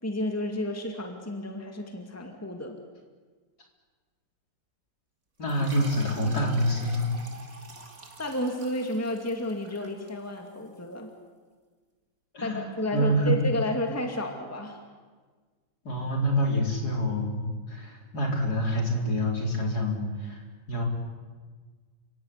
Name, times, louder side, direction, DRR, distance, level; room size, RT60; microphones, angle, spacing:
voice 1, 0.0-2.7 8.2-11.1 12.4-14.8, left 1 dB, 10° left, 4 dB, 2.4 m, -31 dB
voice 2, 5.4-7.1 12.3-12.6 12.9-13.3 15.8-20.9, equal, 55° left, 1 dB, 4.9 m, -27 dB
sound 1, 5.5-10.6, right 2 dB, 45° right, 3.3 m, -47 dB
30.0 x 17.0 x 9.9 m, 1.4 s
omnidirectional pair, 2.1 m